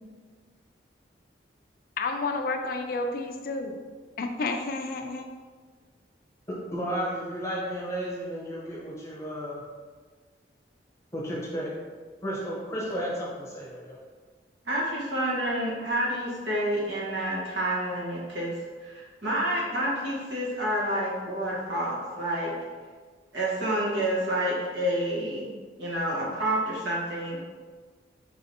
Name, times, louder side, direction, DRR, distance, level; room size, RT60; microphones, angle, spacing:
voice 1, 2.0-3.8 4.2-5.3, left 3 dB, 50° left, 5 dB, 0.3 m, -30 dB
voice 2, 6.7-9.6 11.1-11.7 12.2-14.0, equal, 15° left, -5 dB, 0.8 m, -33 dB
voice 3, 14.6-18.5 18.8-22.5 23.3-25.5 25.8-27.4, right 1 dB, 75° right, -5 dB, 1.3 m, -29 dB
4.6 x 3.3 x 2.8 m, 1.5 s
head